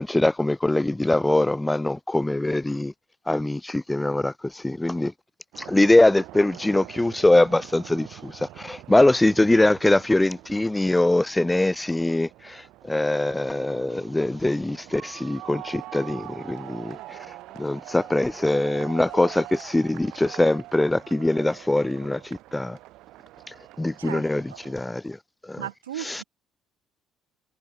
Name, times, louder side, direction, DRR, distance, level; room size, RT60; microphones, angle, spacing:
voice 1, 0.0-2.9 3.3-5.1 5.6-17.2 17.6-22.8 23.5-25.2 25.4-25.6 26.0-26.2, left 2 dB, 10° left, 1.5 m, -23 dB
sound 1, 5.5-24.7, right 17 dB, 60° right, 6.1 m, -44 dB
voice 2, 24.0-24.6 25.6-26.2, right 12 dB, 80° right, 5.2 m, -36 dB
figure-of-eight pair, 50°, 0 cm